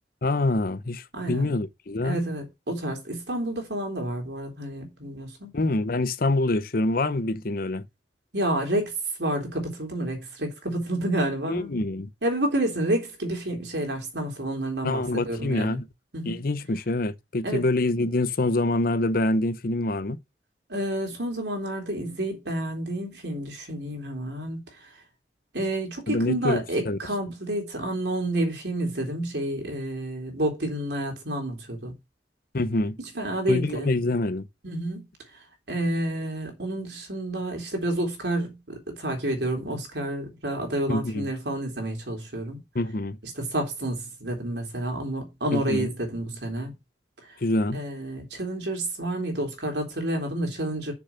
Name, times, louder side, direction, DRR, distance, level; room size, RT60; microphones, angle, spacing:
voice 1, 0.2-2.2 5.5-7.8 11.5-12.1 14.8-15.8 16.3-20.2 26.1-27.0 32.5-33.0 33.5-34.5 40.9-41.3 42.7-43.2 45.5-45.9 47.4-47.8, left 2 dB, 55° left, 0.8 m, -26 dB
voice 2, 1.1-1.5 2.0-5.5 8.3-8.9 9.2-11.7 12.2-15.8 16.1-16.4 17.4-17.6 20.7-24.9 25.5-31.9 33.0-33.9 34.6-35.0 35.7-42.6 43.4-46.7 47.3-47.4 47.7-50.9, right 1 dB, 70° right, 3.7 m, -29 dB
6.8 x 6.1 x 5.6 m
head